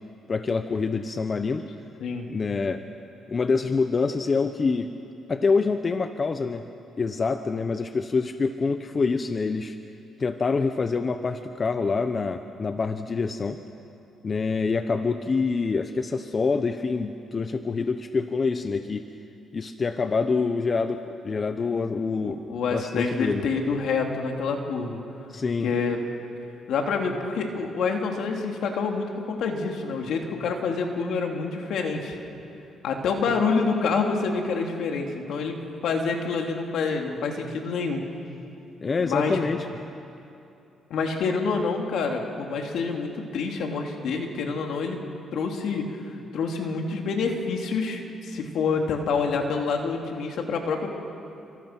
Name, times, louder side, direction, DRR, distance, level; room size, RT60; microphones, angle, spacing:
voice 1, 0.3-1.6 2.3-2.8 3.3-4.9 5.3-6.6 7.0-9.8 10.2-13.6 14.2-19.0 19.5-22.4 22.7-23.4 25.3-25.7 38.8-39.6, left 4 dB, 35° left, 8 dB, 1.0 m, -26 dB
voice 2, 22.2-25.0 25.6-26.0 26.7-32.2 32.8-35.5 35.8-38.1 39.0-39.4 40.9-45.0 45.3-50.9, left 4 dB, 75° left, 2 dB, 3.3 m, -27 dB
29.5 x 25.5 x 6.2 m, 2.7 s
cardioid pair, 90°, 0 cm